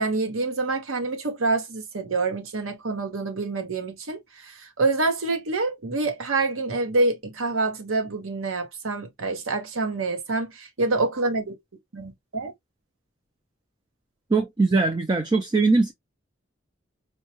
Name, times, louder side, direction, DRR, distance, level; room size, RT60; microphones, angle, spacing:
voice 1, 0.0-11.5 11.9-12.5, right 3 dB, 85° right, 0.9 m, -26 dB
voice 2, 14.3-15.9, right 3 dB, 20° right, 0.4 m, -21 dB
4.5 x 2.2 x 2.8 m
head